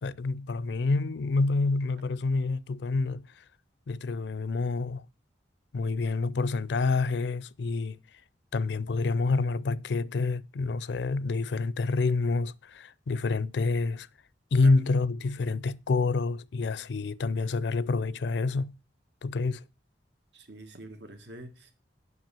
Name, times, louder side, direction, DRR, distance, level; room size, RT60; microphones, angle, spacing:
voice 1, 0.0-3.3 3.9-5.1 5.7-8.0 8.5-14.1 14.5-18.8 19.2-19.6, left 3 dB, 70° left, 0.4 m, -28 dB
voice 2, 20.3-21.7, right 1 dB, 70° right, 1.9 m, -46 dB
7.7 x 5.6 x 7.4 m
head